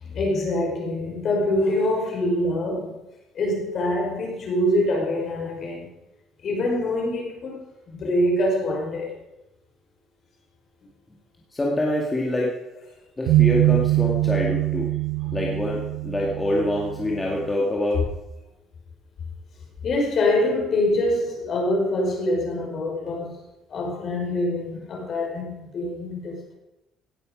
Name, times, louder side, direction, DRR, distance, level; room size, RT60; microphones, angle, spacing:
voice 1, 0.0-3.0 3.3-5.9 6.4-7.6 7.9-9.1 15.2-15.4 19.8-23.4 23.7-26.5, left 1 dB, 45° left, 5.4 m, -25 dB
voice 2, 11.5-12.5 13.2-14.9 15.3-18.0, left 1 dB, 15° left, 2.1 m, -25 dB
sound 1, 13.3-17.5, right 18 dB, 80° right, 0.5 m, -23 dB
17.5 x 11.0 x 5.3 m
cardioid pair, 155°, 0 cm